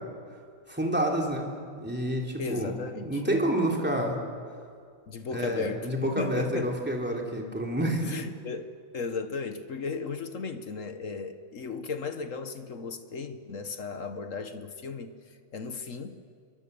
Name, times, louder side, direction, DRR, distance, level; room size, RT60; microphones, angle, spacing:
voice 1, 0.7-1.5 1.8-2.7 3.0-4.2 5.3-8.0, right 1 dB, 5° right, 0 dB, 3.0 m, -28 dB
voice 2, 2.4-3.2 5.1-6.8 8.0-15.2 15.5-16.2, left 4 dB, 45° left, 9 dB, 1.2 m, -35 dB
27.5 x 23.0 x 6.9 m, 2.2 s
omnidirectional pair, 2.4 m